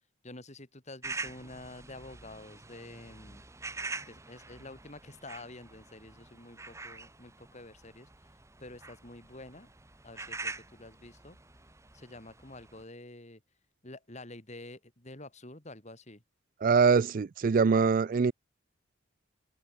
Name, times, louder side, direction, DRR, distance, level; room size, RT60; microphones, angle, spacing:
voice 1, 0.2-3.4 4.1-8.1 8.6-9.7 10.0-11.4 11.9-13.4 13.8-16.2, left 2 dB, 35° left, 3.4 m, -48 dB
sound 1, 1.0-12.8, right 3 dB, 15° right, 1.2 m, -45 dB
voice 2, 16.6-18.3, right 5 dB, 45° right, 0.4 m, -23 dB
head